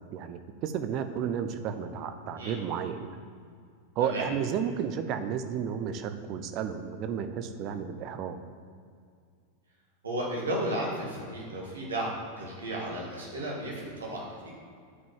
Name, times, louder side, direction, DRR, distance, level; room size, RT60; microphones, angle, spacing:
voice 1, 0.1-3.2 4.0-8.4, right 8 dB, 40° right, 8 dB, 0.7 m, -32 dB
voice 2, 10.0-14.5, right 1 dB, 70° right, -4 dB, 2.1 m, -34 dB
9.6 x 5.3 x 7.2 m, 2.2 s
figure-of-eight pair, 90°, 0 cm